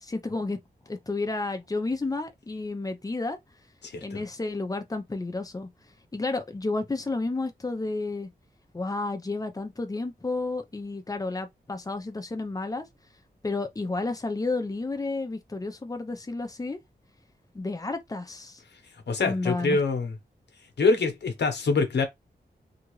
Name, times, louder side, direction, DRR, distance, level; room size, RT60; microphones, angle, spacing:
voice 1, 0.0-0.6 0.9-3.4 4.0-5.7 6.1-8.3 8.7-12.8 13.4-16.8 17.5-18.6 19.2-19.8, left 3 dB, 20° left, 0.6 m, -31 dB
voice 2, 3.8-4.2 18.9-20.2 20.8-22.0, left 4 dB, 90° left, 0.9 m, -25 dB
2.8 x 2.4 x 3.1 m
wide cardioid pair, 125°, 17 cm